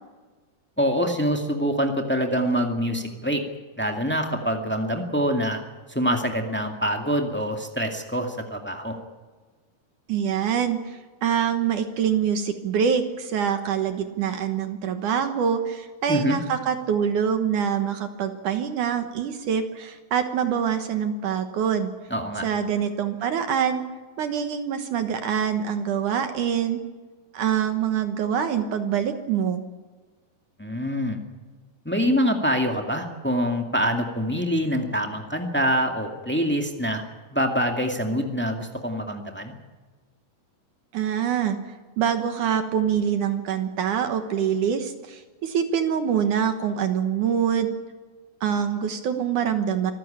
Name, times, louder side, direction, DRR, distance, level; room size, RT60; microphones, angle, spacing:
voice 1, 0.8-3.4 3.8-5.6 5.9-9.0 16.1-16.4 22.1-22.5 30.6-31.2 31.8-37.0 37.3-39.5, equal, 10° left, 3 dB, 0.7 m, -25 dB
voice 2, 10.1-21.9 22.4-23.8 24.2-26.8 27.3-29.6 40.9-41.6 42.0-47.8 48.4-49.9, right 8 dB, 65° right, 8 dB, 2.5 m, -25 dB
25.5 x 15.0 x 8.8 m, 1.4 s
omnidirectional pair, 4.3 m